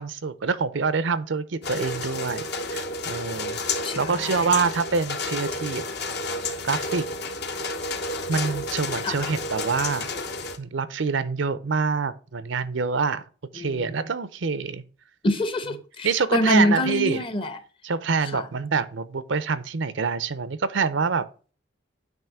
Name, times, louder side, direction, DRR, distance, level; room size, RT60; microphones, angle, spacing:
voice 1, 0.0-3.6 3.9-5.8 6.6-7.0 8.3-10.1 10.6-13.2 13.5-14.8 16.0-17.2 17.8-21.3, right 5 dB, 70° right, 0.6 m, -26 dB
sound 1, 1.6-10.6, left 3 dB, 55° left, 1.1 m, -31 dB
voice 2, 3.8-4.5 9.0-9.3 13.6-13.9 15.2-17.6 18.3-18.4, left 1 dB, 25° left, 0.8 m, -25 dB
9.0 x 3.1 x 6.0 m
head